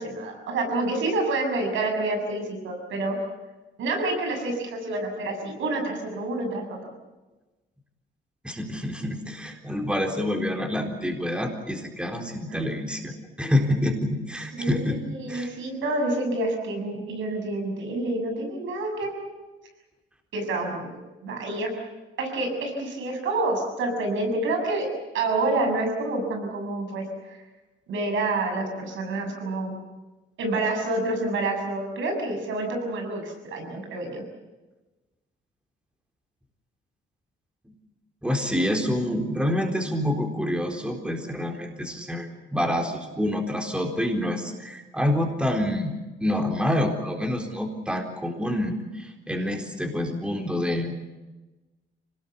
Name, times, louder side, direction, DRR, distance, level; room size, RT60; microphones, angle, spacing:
voice 1, 0.0-3.2 3.8-6.8 12.5-12.7 14.5-19.3 20.3-20.9 21.2-21.7 22.2-24.9 25.1-27.4 27.9-29.7 30.4-34.2, right 2 dB, 75° right, 4 dB, 7.2 m, -28 dB
voice 2, 8.4-13.1 13.4-15.0 15.3-15.5 38.2-51.0, left 1 dB, 5° right, 3 dB, 4.0 m, -27 dB
25.5 x 19.5 x 8.3 m, 1.1 s
cardioid pair, 90°, 20 cm